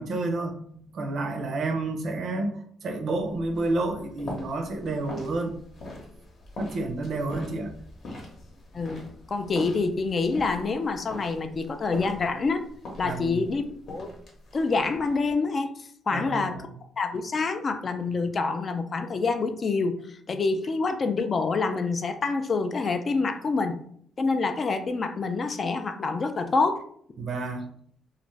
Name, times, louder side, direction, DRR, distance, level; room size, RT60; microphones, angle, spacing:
voice 1, 0.0-5.5 6.6-7.7 13.0-13.4 16.1-16.7 27.2-27.7, right 2 dB, 60° right, 5 dB, 0.5 m, -30 dB
sound 1, 3.1-15.3, left 1 dB, 60° left, 0.8 m, -43 dB
voice 2, 8.7-12.6 13.0-13.6 13.9-14.1 14.5-15.7 16.1-16.6 17.0-20.0 20.3-23.8 24.2-26.8, left 4 dB, 40° left, 8 dB, 0.4 m, -26 dB
2.5 x 2.4 x 3.1 m, 0.62 s
cardioid pair, 90°, 0 cm